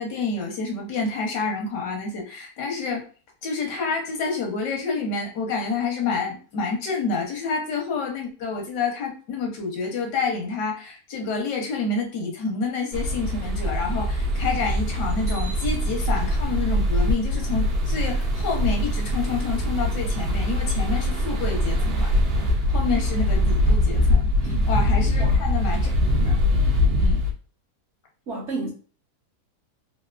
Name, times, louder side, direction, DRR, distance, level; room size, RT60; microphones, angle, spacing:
voice 1, 0.0-3.0 3.4-22.1 22.7-24.3 24.7-26.3 27.0-27.2, left 4 dB, 80° left, 1.5 m, -28 dB
sound 1, 12.9-27.3, left 1 dB, 80° right, 0.5 m, -22 dB
voice 2, 28.3-28.7, right 3 dB, 55° right, 0.8 m, -31 dB
3.4 x 2.6 x 2.4 m
omnidirectional pair, 1.8 m